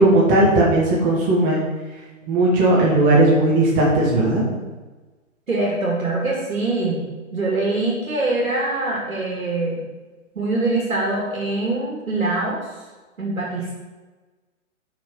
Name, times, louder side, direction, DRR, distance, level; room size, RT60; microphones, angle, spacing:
voice 1, 0.0-1.6 2.3-4.4, right 2 dB, 20° right, -4 dB, 1.6 m, -17 dB
voice 2, 5.5-7.0 7.3-9.8 10.3-12.6 13.2-13.8, right 2 dB, 70° right, -3 dB, 2.4 m, -23 dB
5.8 x 5.1 x 6.7 m, 1.3 s
figure-of-eight pair, 130°, 40 cm